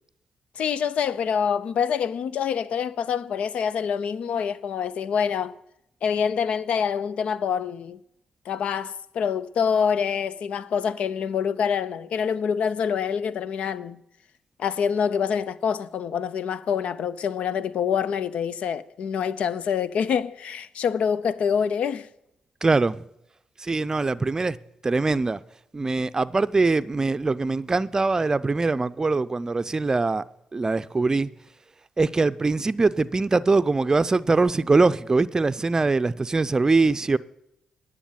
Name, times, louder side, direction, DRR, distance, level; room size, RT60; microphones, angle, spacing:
voice 1, 0.6-5.5 6.0-8.0 8.5-14.0 14.6-22.1, left 7 dB, 70° left, 0.5 m, -26 dB
voice 2, 22.6-23.0 23.6-24.6 24.8-25.4 25.7-30.2 30.5-31.3 32.0-37.2, right 3 dB, 30° right, 0.5 m, -22 dB
10.0 x 6.4 x 9.0 m
supercardioid pair, 55°, 2 cm